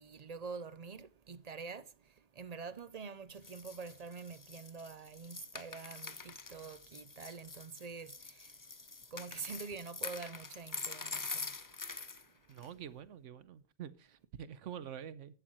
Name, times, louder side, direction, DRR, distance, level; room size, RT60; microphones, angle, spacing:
voice 1, 0.0-8.5 9.1-11.5, right 5 dB, 45° right, 0.5 m, -46 dB
sound 1, 3.4-12.2 12.6-12.7, left 4 dB, 25° left, 0.4 m, -45 dB
voice 2, 12.5-15.3, right 9 dB, 85° right, 1.1 m, -47 dB
14.0 x 11.5 x 3.1 m
omnidirectional pair, 1.2 m